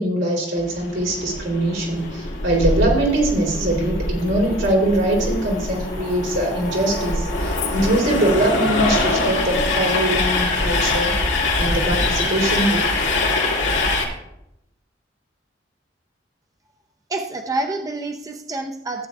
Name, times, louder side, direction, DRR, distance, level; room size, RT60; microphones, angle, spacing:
voice 1, 0.0-11.1 11.6-12.9, right 1 dB, 90° right, -2 dB, 3.5 m, -22 dB
Train, 0.6-14.1, left 2 dB, 85° left, 2.1 m, -23 dB
voice 2, 17.1-19.1, right 2 dB, 20° right, 3 dB, 0.5 m, -27 dB
14.5 x 8.7 x 2.4 m, 0.83 s
head